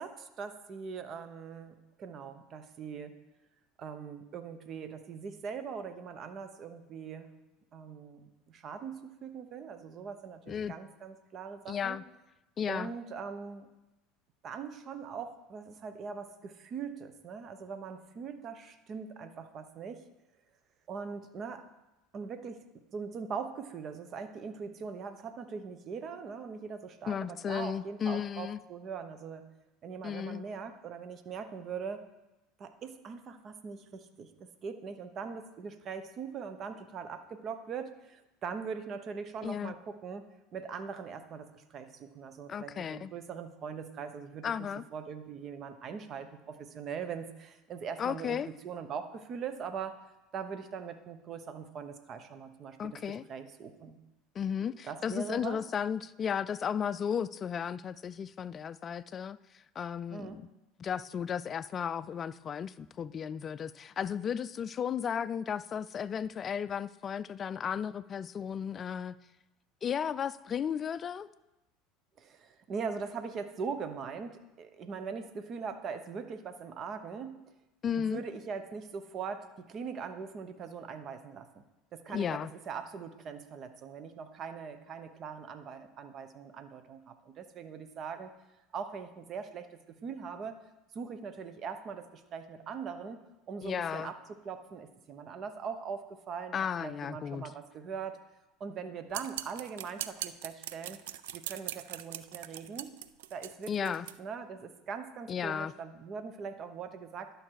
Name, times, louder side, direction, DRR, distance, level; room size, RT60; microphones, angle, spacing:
voice 1, 0.0-3.1 3.8-7.3 7.7-12.0 12.7-13.7 14.4-20.0 20.9-21.6 22.1-22.6 22.9-29.4 29.8-32.1 32.6-40.2 40.5-48.4 48.6-50.0 50.3-54.0 54.9-55.6 60.1-60.4 72.2-77.4 78.1-81.6 81.9-88.3 88.7-90.6 90.9-93.2 93.5-98.2 98.6-101.0 101.3-102.9 103.3-107.3, right 6 dB, 45° right, 10 dB, 1.0 m, -41 dB
voice 2, 11.7-12.0 12.6-12.9 27.1-28.6 30.0-30.4 39.4-39.7 42.5-43.1 44.4-44.8 48.0-48.5 52.8-53.3 54.4-59.4 59.8-60.4 60.8-69.2 69.8-71.3 77.8-78.2 82.1-82.5 93.6-94.1 96.5-97.5 103.7-104.1 105.3-105.7, left 8 dB, 35° left, 16 dB, 0.4 m, -34 dB
sound 1, 99.1-104.2, right 13 dB, 75° right, 0.3 m, -41 dB
11.0 x 6.5 x 4.7 m, 0.98 s
hypercardioid pair, 80°, 0 cm